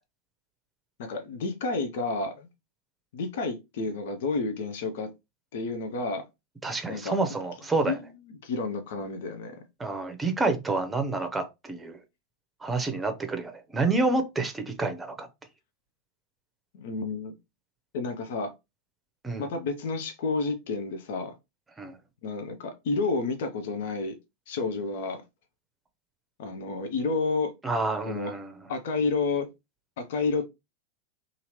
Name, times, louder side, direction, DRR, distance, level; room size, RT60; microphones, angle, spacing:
voice 1, 1.0-2.5 3.1-5.1 5.5-6.2 6.9-7.2 7.8-8.0 8.4-9.6 16.7-17.3 17.9-18.5 19.4-21.3 22.2-24.1 24.5-25.2 26.4-27.5 28.0-28.3 28.7-29.5 30.0-30.4, left 3 dB, 65° left, 0.5 m, -30 dB
voice 2, 6.6-8.0 9.8-12.0 12.6-15.3 19.2-19.5 21.8-22.0 27.6-28.5, right 3 dB, 15° right, 0.7 m, -28 dB
2.8 x 2.5 x 3.0 m
figure-of-eight pair, 90°, 0 cm